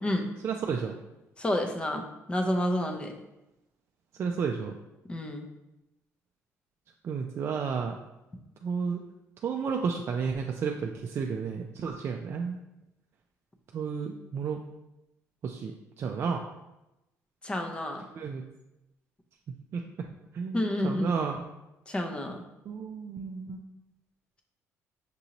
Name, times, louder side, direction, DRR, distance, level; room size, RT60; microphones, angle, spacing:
voice 1, 0.4-1.0 4.2-4.7 7.0-8.0 8.6-9.0 9.4-12.6 13.7-14.6 15.4-15.7 16.0-16.4 18.2-18.4 19.7-19.8 20.3-21.4 22.7-23.6, right 6 dB, 50° right, 2 dB, 0.3 m, -32 dB
voice 2, 1.4-3.1 5.1-5.5 17.4-18.0 20.5-21.1 21.9-22.4, left 1 dB, 20° left, 4 dB, 0.6 m, -29 dB
6.0 x 2.7 x 2.9 m, 0.95 s
cardioid pair, 100°, 6 cm